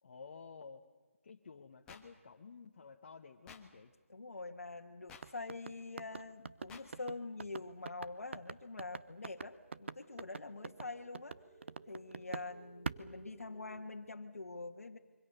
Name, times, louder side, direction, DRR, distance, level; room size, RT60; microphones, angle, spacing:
voice 1, 0.0-0.8 1.2-3.9, left 5 dB, 45° left, 3 dB, 1.3 m, -53 dB
sound 1, 1.9-2.0 3.5-3.6 5.1-5.2 6.7-6.8, left 6 dB, 10° left, 1.4 m, -52 dB
voice 2, 4.1-11.4 11.9-15.0, left 3 dB, 90° left, 1 dB, 1.6 m, -45 dB
sound 2, 5.2-12.5 12.8-13.9, right 5 dB, 55° right, 0.9 m, -44 dB
sound 3, 8.9-13.9, right 5 dB, 35° right, 1.7 m, -61 dB
26.5 x 24.5 x 6.7 m, 1.4 s
figure-of-eight pair, 165°, 8 cm